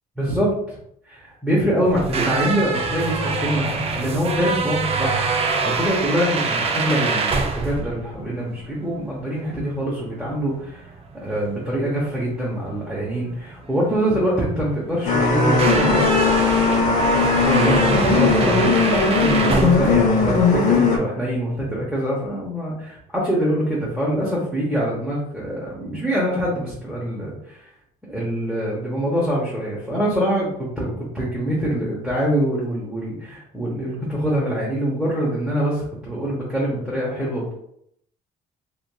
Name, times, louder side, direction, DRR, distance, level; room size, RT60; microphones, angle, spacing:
voice 1, 0.2-0.8 1.1-10.9 11.2-16.0 17.4-27.7 28.1-30.5 30.8-37.5, equal, ahead, -6 dB, 0.8 m, -24 dB
sound 1, 1.9-20.8, right 4 dB, 35° right, 0.4 m, -26 dB
sound 2, 15.0-21.0, left 4 dB, 45° left, 0.7 m, -18 dB
3.0 x 2.5 x 2.2 m, 0.72 s
cardioid pair, 110°, 17 cm